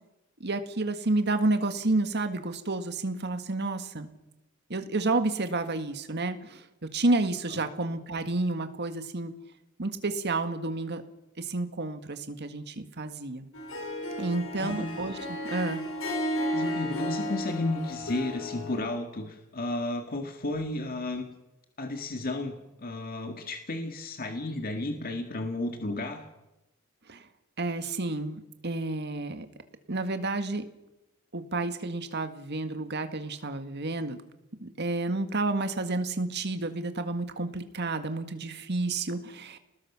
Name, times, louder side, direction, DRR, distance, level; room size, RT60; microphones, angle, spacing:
voice 1, 0.4-4.1 4.7-6.7 6.9-9.3 9.8-11.0 11.4-13.5 14.2-15.8 27.1-27.3 27.6-29.5 29.9-30.6 31.3-34.2 34.6-39.6, right 2 dB, 55° right, 8 dB, 1.8 m, -30 dB
Harp, 13.5-18.9, equal, 80° left, 4.7 m, -33 dB
voice 2, 14.6-14.9 16.5-21.2 21.8-26.2, left 2 dB, 45° left, 5 dB, 1.9 m, -33 dB
28.5 x 19.5 x 6.1 m, 0.95 s
head